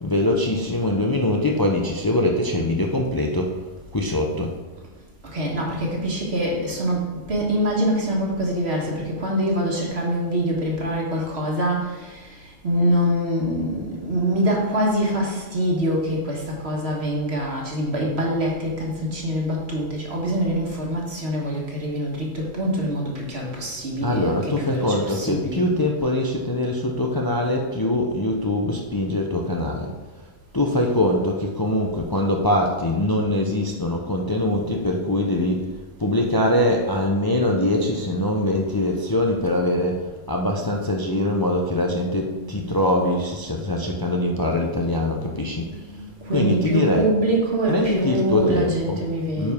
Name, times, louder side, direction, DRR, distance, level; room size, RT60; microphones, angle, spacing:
voice 1, 0.0-3.5 3.9-4.5 24.0-29.9 30.5-35.6 36.0-45.7 46.3-47.1 47.7-49.0 49.4-49.5, left 1 dB, 30° left, 1 dB, 0.4 m, -23 dB
voice 2, 5.3-25.6 40.6-40.7 41.4-41.9 42.2-43.4 43.6-45.0 45.4-49.5, equal, 55° right, -2 dB, 1.6 m, -25 dB
9.2 x 4.8 x 3.5 m, 1.2 s
omnidirectional pair, 1.3 m